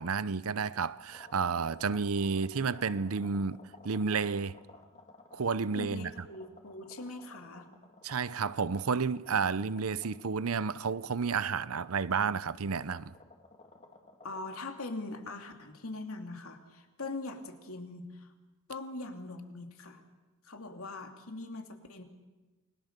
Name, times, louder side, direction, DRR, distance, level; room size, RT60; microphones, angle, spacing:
voice 1, 0.0-3.6 3.8-4.6 5.3-6.3 8.0-13.1, right 5 dB, 90° right, 0.7 m, -31 dB
sound 1, 1.1-14.6, left 2 dB, 30° left, 2.2 m, -56 dB
voice 2, 5.7-7.7 14.2-18.3 18.7-20.0 20.4-22.0, left 2 dB, 80° left, 2.8 m, -42 dB
29.0 x 21.0 x 6.7 m
head